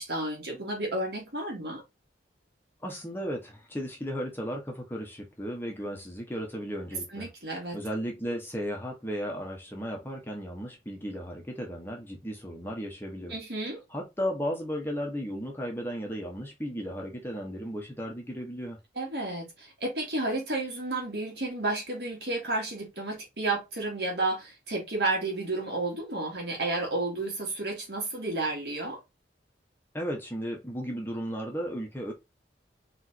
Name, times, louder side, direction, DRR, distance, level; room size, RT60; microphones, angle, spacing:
voice 1, 0.0-1.8 7.1-7.8 13.3-13.8 19.0-29.0, right 2 dB, 60° right, 2.4 m, -31 dB
voice 2, 2.8-7.3 7.7-13.4 13.9-18.8 29.9-32.1, equal, 10° left, 1.4 m, -35 dB
4.8 x 3.6 x 2.9 m
head